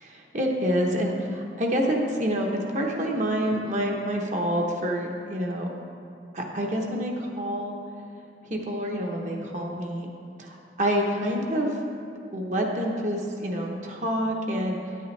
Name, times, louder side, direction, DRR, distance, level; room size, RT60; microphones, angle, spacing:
voice 1, 0.0-5.7 6.3-7.8 8.4-10.1 10.4-11.8 12.3-14.8, equal, 45° right, 0 dB, 1.0 m, -27 dB
9.5 x 8.9 x 3.3 m, 2.5 s
head